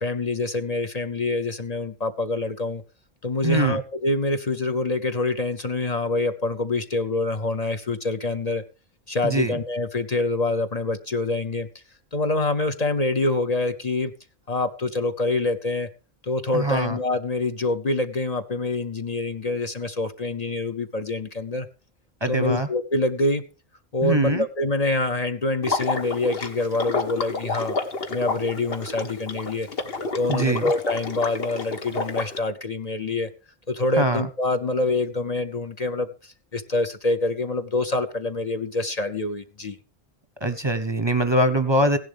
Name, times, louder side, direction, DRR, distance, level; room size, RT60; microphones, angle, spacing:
voice 1, 0.0-2.8 3.2-8.6 9.1-11.7 12.1-14.1 14.5-15.9 16.2-21.7 22.2-23.4 23.9-27.8 28.1-29.7 30.1-33.3 33.7-39.8, left 2 dB, 40° left, 7 dB, 0.8 m, -26 dB
voice 2, 3.4-3.8 9.2-9.6 16.5-17.0 22.2-22.7 24.0-24.4 30.3-30.6 34.0-34.2 40.4-42.0, right 2 dB, 30° right, 9 dB, 0.7 m, -22 dB
Water / Liquid, 25.6-32.4, left 3 dB, 65° left, 1.5 m, -29 dB
16.5 x 11.0 x 3.4 m, 0.34 s
omnidirectional pair, 1.1 m